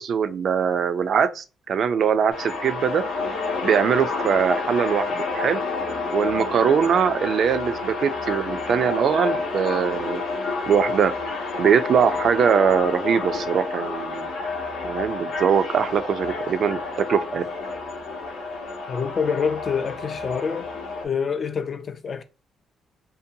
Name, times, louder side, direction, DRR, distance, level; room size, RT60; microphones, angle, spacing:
voice 1, 0.0-3.0 3.6-5.6 6.1-10.2 10.7-11.1 11.6-14.3 14.8-17.4, right 7 dB, 60° right, 0.3 m, -22 dB
sound 1, 2.3-21.0, left 3 dB, 80° left, 0.7 m, -29 dB
voice 2, 18.9-20.7 21.0-22.2, left 6 dB, 45° left, 0.3 m, -26 dB
2.7 x 2.1 x 2.6 m
cardioid pair, 90°, 0 cm